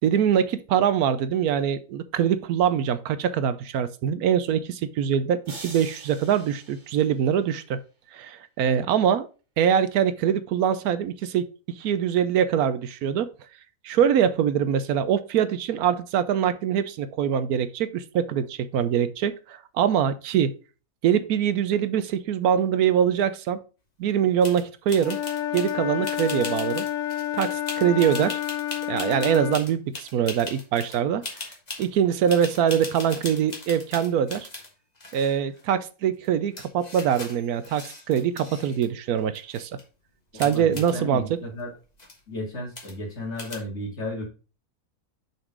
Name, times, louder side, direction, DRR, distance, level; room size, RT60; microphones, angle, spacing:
voice 1, 0.0-7.8 8.1-9.3 9.6-11.5 11.7-13.3 13.8-20.5 21.0-23.6 24.0-25.2 25.5-26.9 27.3-28.4 28.9-31.2 31.8-34.5 35.1-39.7 40.3-41.4, right 8 dB, 75° right, 13 dB, 1.1 m, -23 dB
sound 1, 5.5-7.7, right 3 dB, 45° right, 2.0 m, -44 dB
sound 2, 24.4-24.6 24.9-25.7 26.0-31.0 31.2-31.9 32.3-34.7 35.0-35.6 36.2-36.3 36.5-38.9 39.2-39.8 40.4-40.9 41.6-41.7 41.9-42.2 42.7-43.1 43.4-43.6, left 2 dB, 25° left, 1.5 m, -39 dB
Wind instrument woodwind instrument, 25.0-29.6, left 11 dB, 65° left, 0.8 m, -29 dB
voice 2, 40.3-41.7 42.3-44.2, left 1 dB, 45° left, -2 dB, 2.7 m, -33 dB
6.6 x 4.4 x 4.6 m, 0.34 s
omnidirectional pair, 1.6 m